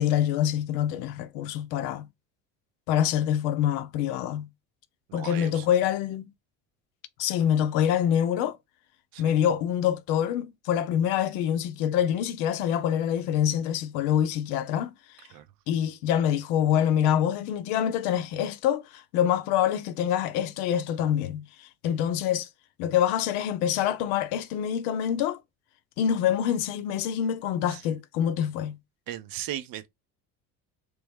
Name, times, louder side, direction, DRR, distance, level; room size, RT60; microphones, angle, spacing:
voice 1, 0.0-2.1 2.9-4.5 5.1-6.2 7.2-8.6 9.2-14.9 15.7-22.5 22.8-25.4 26.0-28.8, left 10 dB, 70° left, 0.7 m, -26 dB
voice 2, 5.1-5.7 9.1-9.3 15.3-15.5 27.7-27.8 29.1-29.9, right 12 dB, 50° right, 0.7 m, -37 dB
3.2 x 3.0 x 3.5 m
hypercardioid pair, 60°, 45 cm